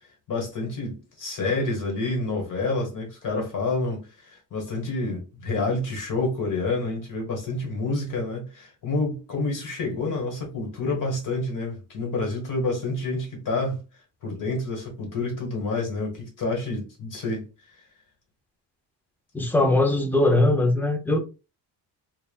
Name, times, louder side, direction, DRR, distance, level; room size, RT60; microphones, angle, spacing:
voice 1, 0.3-13.8 14.2-17.5, left 2 dB, 45° left, 1.3 m, -28 dB
voice 2, 19.3-21.2, left 2 dB, 5° left, 0.4 m, -20 dB
3.2 x 2.1 x 2.2 m
cardioid pair, 115°, 42 cm